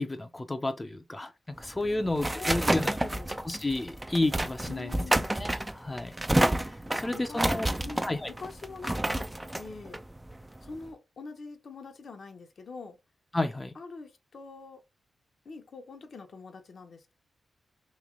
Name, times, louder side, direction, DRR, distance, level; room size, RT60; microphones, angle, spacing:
voice 1, 0.0-3.0 3.4-4.9 5.3-6.1 6.4-7.7 8.1-8.3 13.3-13.8, left 2 dB, 25° left, 0.6 m, -31 dB
sound 1, 1.6-10.9, right 1 dB, 20° right, 0.5 m, -30 dB
voice 2, 1.8-3.4 4.7-5.3 6.9-9.3 9.5-10.0 10.6-13.0 13.8-14.8 15.4-17.1, left 4 dB, 65° left, 0.8 m, -45 dB
3.1 x 2.9 x 3.7 m
supercardioid pair, 40°, 0 cm